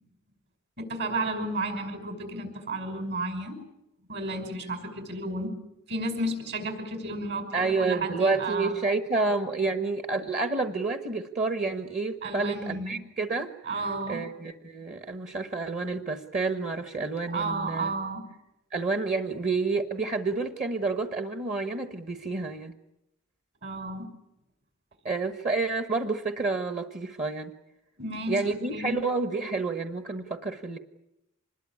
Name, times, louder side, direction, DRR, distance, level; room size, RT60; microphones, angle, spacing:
voice 1, 0.8-3.6 4.1-5.6 5.9-8.7 12.2-13.0 13.6-14.2 17.3-18.3 23.6-24.1 28.0-29.0, right 2 dB, 55° right, 5 dB, 5.7 m, -32 dB
voice 2, 7.5-17.9 18.7-22.7 25.0-27.5 28.3-30.8, right 3 dB, 35° right, 7 dB, 1.3 m, -29 dB
26.0 x 21.0 x 8.6 m, 0.89 s
head